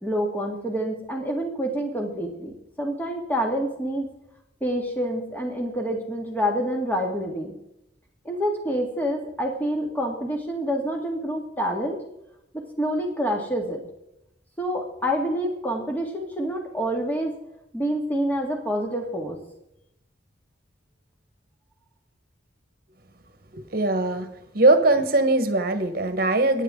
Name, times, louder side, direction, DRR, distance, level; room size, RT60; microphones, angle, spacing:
voice 1, 0.0-4.1 4.6-7.5 8.3-12.0 12.5-13.8 14.6-17.3 17.7-19.4, equal, 10° left, 2 dB, 2.1 m, -27 dB
voice 2, 23.5-24.3 24.5-26.6, right 2 dB, 55° right, 9 dB, 1.3 m, -21 dB
24.0 x 9.1 x 3.8 m, 0.83 s
head